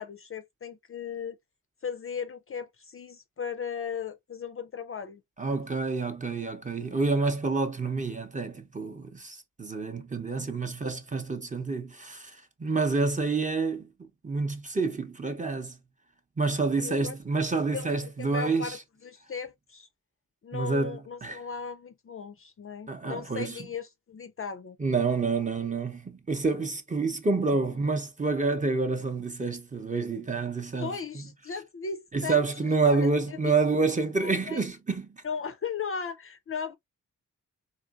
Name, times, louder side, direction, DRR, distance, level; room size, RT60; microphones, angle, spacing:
voice 1, 0.0-1.4 1.8-5.2 16.8-17.2 17.7-19.9 20.4-24.8 30.8-33.5 34.2-34.6 35.2-36.7, left 6 dB, 40° left, 0.4 m, -37 dB
voice 2, 5.4-13.9 14.2-15.8 16.4-18.8 20.5-21.4 22.9-23.6 24.8-31.2 32.1-35.2, right 4 dB, 20° right, 0.7 m, -28 dB
3.8 x 2.5 x 2.3 m
wide cardioid pair, 85°, 34 cm